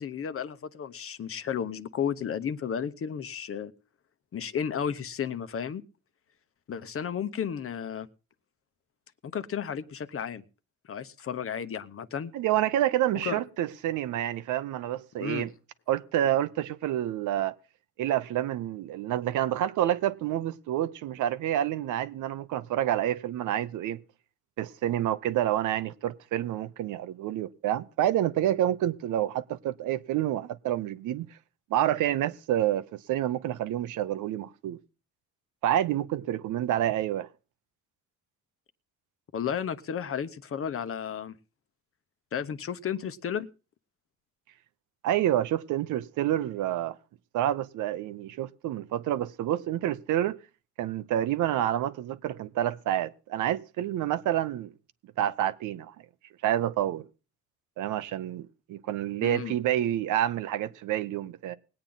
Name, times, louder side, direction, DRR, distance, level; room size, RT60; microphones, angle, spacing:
voice 1, 0.0-3.7 4.3-5.8 6.7-8.1 9.2-10.4 10.9-12.3 13.2-13.3 15.2-15.5 39.3-41.3 42.3-43.5 59.2-59.5, left 8 dB, 45° left, 0.9 m, -33 dB
voice 2, 12.3-15.5 15.9-17.5 18.0-24.0 24.6-31.3 31.7-34.8 35.6-37.3 45.0-47.0 47.3-50.4 50.8-54.7 55.2-55.9 56.4-57.0 57.8-61.6, right 12 dB, 80° right, 0.8 m, -28 dB
20.5 x 8.7 x 3.9 m
cardioid pair, 90°, 30 cm